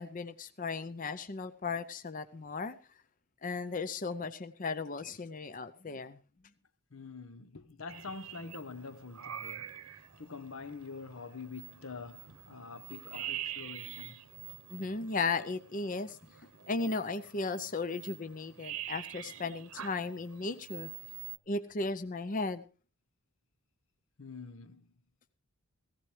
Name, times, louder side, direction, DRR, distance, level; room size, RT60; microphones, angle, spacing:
voice 1, 0.0-2.8 3.4-6.2 14.7-16.2 16.7-20.9 21.5-22.6, left 3 dB, 35° left, 0.6 m, -36 dB
voice 2, 6.9-14.3 24.2-24.9, left 4 dB, 65° left, 0.9 m, -46 dB
sound 1, 7.9-21.4, right 11 dB, 80° right, 0.9 m, -46 dB
18.0 x 16.0 x 3.2 m
head